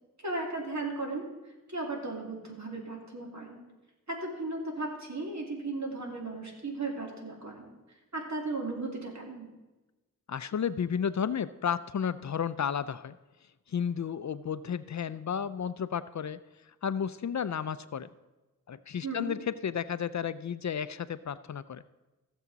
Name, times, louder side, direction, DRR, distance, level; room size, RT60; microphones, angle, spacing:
voice 1, 0.2-1.2 1.7-3.6 4.1-7.7 8.1-9.5 19.0-19.3, right 2 dB, 55° right, 0 dB, 2.5 m, -36 dB
voice 2, 10.3-13.1 13.7-16.4 16.8-18.1 18.7-21.8, left 7 dB, 55° left, 15 dB, 0.4 m, -32 dB
15.5 x 7.2 x 4.0 m, 1.1 s
wide cardioid pair, 50°, 33 cm